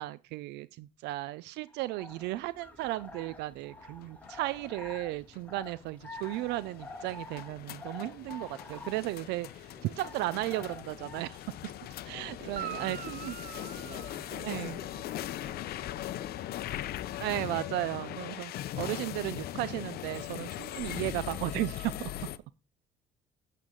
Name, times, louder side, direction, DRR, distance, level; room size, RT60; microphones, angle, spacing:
voice 1, 0.0-11.4 12.1-13.3 14.4-14.7 17.2-22.1, right 17 dB, 85° right, 0.4 m, -35 dB
sound 1, 1.7-11.4, left 3 dB, 10° left, 2.3 m, -48 dB
sound 2, 3.8-22.4, left 13 dB, 65° left, 0.6 m, -40 dB
voice 2, 12.1-12.4 12.7-16.6 17.8-17.9, equal, 20° right, 4.6 m, -52 dB
Guitar, 12.5-15.1 18.9-19.0, right 10 dB, 60° right, 1.0 m, -43 dB
8.9 x 7.6 x 3.8 m
cardioid pair, 110°, 17 cm